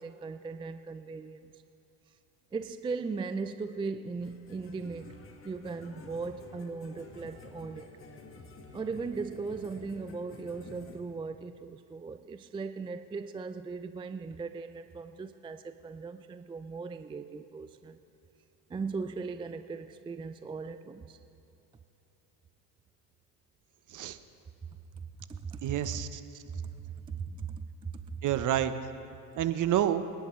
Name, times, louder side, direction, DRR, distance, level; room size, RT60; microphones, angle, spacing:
voice 1, 0.0-1.6 2.5-5.1 5.4-7.9 8.7-18.0 18.7-21.2 25.0-25.1 25.3-25.6 25.9-26.0 26.5-26.7 27.1-28.2, right 4 dB, 10° right, 10 dB, 0.4 m, -38 dB
sound 1, 4.2-11.0, left 3 dB, 30° left, 1.7 m, -50 dB
voice 2, 25.6-26.2 28.2-28.7 29.4-30.0, right 11 dB, 45° right, 11 dB, 0.9 m, -28 dB
28.0 x 10.5 x 3.2 m, 3.0 s
supercardioid pair, 85°, 44 cm